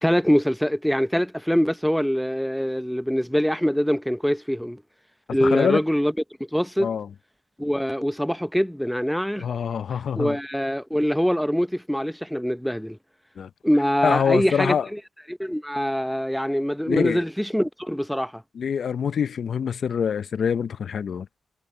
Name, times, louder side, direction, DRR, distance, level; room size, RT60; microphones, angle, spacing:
voice 1, 0.0-4.8 5.3-6.1 6.5-6.9 7.6-9.5 10.2-13.0 13.6-15.0 15.3-18.4, equal, ahead, 0.7 m, -24 dB
voice 2, 5.4-5.8 6.8-7.1 9.4-10.4 13.4-13.5 14.0-14.9 16.9-17.2 18.5-21.3, left 7 dB, 70° left, 0.6 m, -25 dB
cardioid pair, 60°, 0 cm